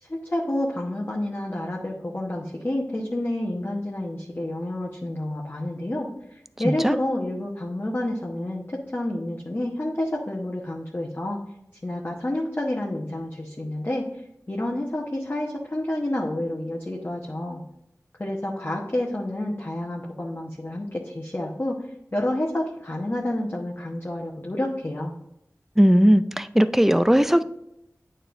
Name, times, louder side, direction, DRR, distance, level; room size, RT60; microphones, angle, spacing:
voice 1, 0.0-11.4 11.8-17.6 18.2-21.8 22.1-25.2, left 1 dB, 35° left, -3 dB, 1.1 m, -29 dB
voice 2, 6.6-7.0 25.8-27.4, equal, 5° right, 13 dB, 0.4 m, -18 dB
9.0 x 4.3 x 2.6 m, 0.83 s
wide cardioid pair, 40°, 6 cm